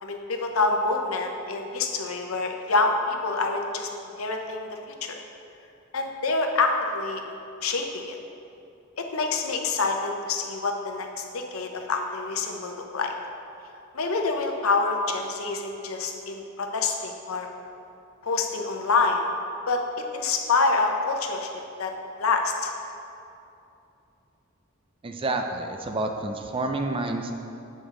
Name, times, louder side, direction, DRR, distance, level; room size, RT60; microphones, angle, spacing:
voice 1, 0.0-3.9 4.2-5.2 5.9-7.2 7.6-8.2 9.0-13.1 13.9-17.5 18.2-19.2 19.7-19.8 20.1-21.5 21.8-21.9 22.2-22.7, left 3 dB, 85° left, 3 dB, 0.7 m, -26 dB
voice 2, 25.0-27.3, right 2 dB, 25° right, 4 dB, 0.4 m, -29 dB
8.0 x 5.2 x 3.7 m, 2.7 s
head